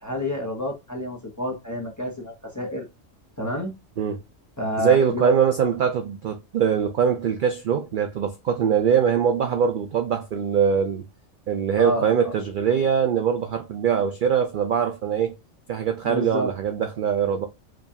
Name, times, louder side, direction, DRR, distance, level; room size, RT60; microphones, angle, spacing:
voice 1, 0.0-2.9 3.4-3.7 4.6-5.3 11.8-12.1 16.0-16.5, left 1 dB, 15° left, 0.7 m, -28 dB
voice 2, 4.8-11.0 11.5-15.3 15.7-17.5, right 7 dB, 60° right, 0.5 m, -22 dB
4.9 x 2.4 x 2.6 m
omnidirectional pair, 1.3 m